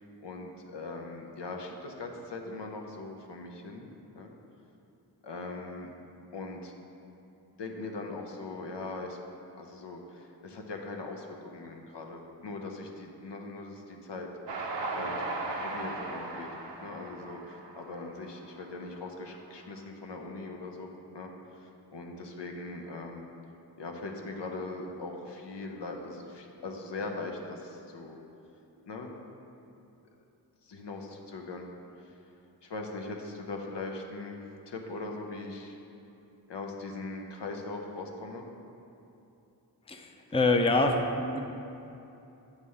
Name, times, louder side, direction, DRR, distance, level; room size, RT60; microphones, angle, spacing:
voice 1, 0.2-3.9 4.1-4.3 5.2-5.9 6.3-6.7 7.6-9.2 9.5-14.3 14.9-15.3 15.6-16.5 16.8-23.3 23.8-28.2 28.9-29.1 30.6-31.7 32.0-32.2 32.6-35.8 36.5-38.4, left 3 dB, 75° left, 2 dB, 0.7 m, -40 dB
Train, 14.5-18.9, right 2 dB, 85° right, 0.7 m, -37 dB
voice 2, 39.9-41.4, left 2 dB, 15° left, 3 dB, 0.5 m, -26 dB
7.9 x 3.3 x 5.5 m, 2.8 s
cardioid pair, 40°, 42 cm